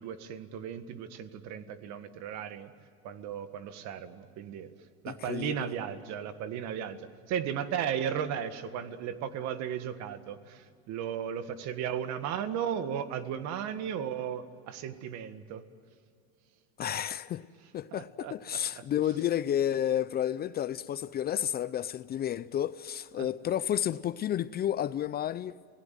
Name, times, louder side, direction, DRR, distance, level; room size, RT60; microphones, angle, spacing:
voice 1, 0.0-2.7 3.0-4.7 5.0-15.6 17.9-18.6 23.2-23.3, right 8 dB, 55° right, 1.9 m, -35 dB
voice 2, 5.1-5.7 16.8-17.5 17.7-25.5, left 10 dB, 30° left, 0.6 m, -31 dB
29.0 x 18.0 x 9.3 m
supercardioid pair, 125°, 33 cm